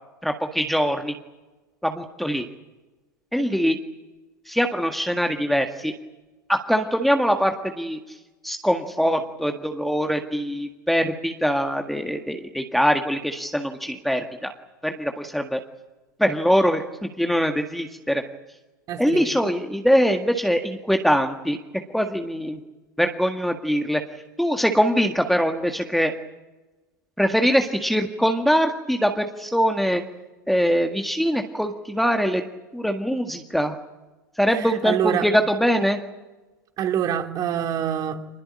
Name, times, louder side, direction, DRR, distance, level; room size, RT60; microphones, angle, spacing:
voice 1, 0.2-1.1 1.8-2.5 3.3-3.8 4.5-5.9 6.5-8.0 8.4-14.5 14.8-15.6 16.2-18.2 19.0-21.6 21.9-22.6 23.0-24.0 24.4-26.1 27.2-30.0 30.5-32.4 32.7-33.8 34.4-36.0, equal, ahead, 1.8 m, -22 dB
voice 2, 18.9-19.2 34.6-35.3 36.8-38.4, right 9 dB, 35° right, 3.1 m, -26 dB
25.0 x 20.5 x 8.8 m
hypercardioid pair, 100°, 10 cm